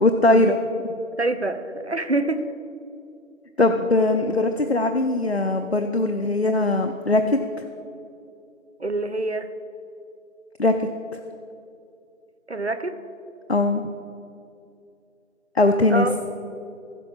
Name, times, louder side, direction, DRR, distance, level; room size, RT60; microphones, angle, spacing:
voice 1, 0.0-0.6 3.6-7.4 10.6-11.2 13.5-13.8 15.6-16.1, left 2 dB, 55° left, 6 dB, 0.6 m, -20 dB
voice 2, 1.1-2.4 8.8-9.5 12.5-13.0 15.9-16.1, right 2 dB, 55° right, 11 dB, 0.7 m, -25 dB
15.0 x 6.2 x 5.7 m, 2.5 s
figure-of-eight pair, 175°, 40 cm